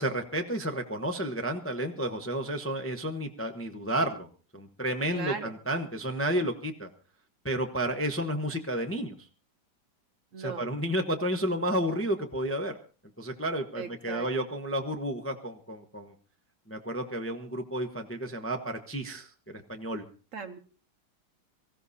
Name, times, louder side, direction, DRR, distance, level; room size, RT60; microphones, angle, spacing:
voice 1, 0.0-4.3 4.5-6.9 7.4-9.1 10.4-12.7 13.2-16.1 16.7-20.0, right 1 dB, 10° left, 5 dB, 0.7 m, -31 dB
voice 2, 5.1-5.5 10.3-10.7 13.8-14.3 20.3-20.6, right 5 dB, 55° right, 8 dB, 1.1 m, -37 dB
24.5 x 15.0 x 2.8 m, 0.36 s
omnidirectional pair, 1.9 m